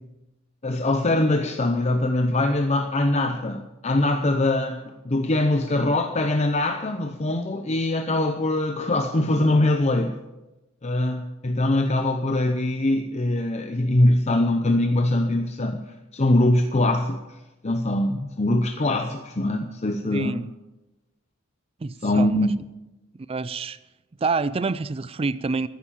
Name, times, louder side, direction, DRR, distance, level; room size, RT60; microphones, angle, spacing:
voice 1, 0.6-10.2 10.8-17.4 17.6-20.5 22.0-22.6, left 1 dB, 30° left, 6 dB, 0.7 m, -23 dB
voice 2, 20.1-20.5 21.8-22.5 23.3-23.8 24.2-25.7, right 4 dB, 25° right, 16 dB, 0.4 m, -27 dB
14.5 x 9.5 x 7.2 m, 1.0 s
head